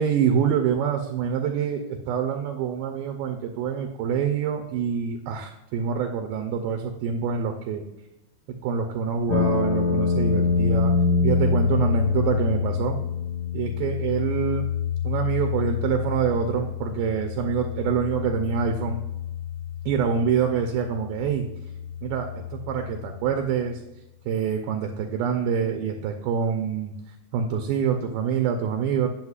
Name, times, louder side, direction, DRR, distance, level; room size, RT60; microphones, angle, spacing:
voice 1, 0.0-7.8 8.5-10.9 11.2-13.0 13.5-14.7 15.0-19.0 19.9-21.5 22.0-23.8 24.3-29.1, right 7 dB, 80° right, 4 dB, 2.3 m, -26 dB
sound 1, 9.3-23.3, left 5 dB, 85° left, 1.5 m, -26 dB
9.5 x 7.6 x 2.4 m, 0.94 s
omnidirectional pair, 4.6 m